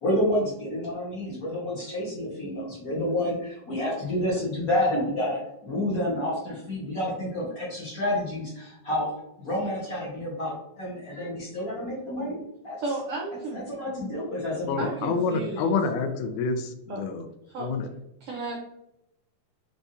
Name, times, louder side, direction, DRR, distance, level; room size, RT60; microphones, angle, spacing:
voice 1, 0.0-9.1 9.4-12.4 12.6-12.8 13.5-14.9, left 1 dB, 45° left, -6 dB, 1.1 m, -29 dB
voice 2, 12.8-13.6 14.8-15.7 16.9-17.0 17.5-17.7 18.2-18.6, right 3 dB, 85° right, -1 dB, 1.3 m, -33 dB
voice 3, 14.7-17.3 17.6-17.9, left 4 dB, 90° left, 8 dB, 2.0 m, -28 dB
5.3 x 3.4 x 2.7 m, 0.82 s
omnidirectional pair, 3.5 m